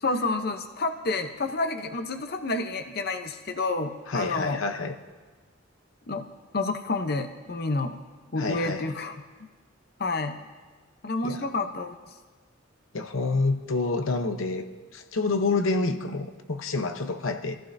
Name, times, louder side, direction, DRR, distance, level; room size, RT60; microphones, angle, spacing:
voice 1, 0.0-4.6 6.1-6.3 6.5-8.0 8.3-9.1 10.0-10.4 11.0-11.9, left 3 dB, 50° left, 7 dB, 0.8 m, -29 dB
voice 2, 4.1-5.0 8.4-8.8 11.2-11.4 12.9-14.7 14.9-17.6, left 3 dB, 90° left, 6 dB, 0.9 m, -28 dB
26.5 x 14.5 x 2.7 m, 1.4 s
head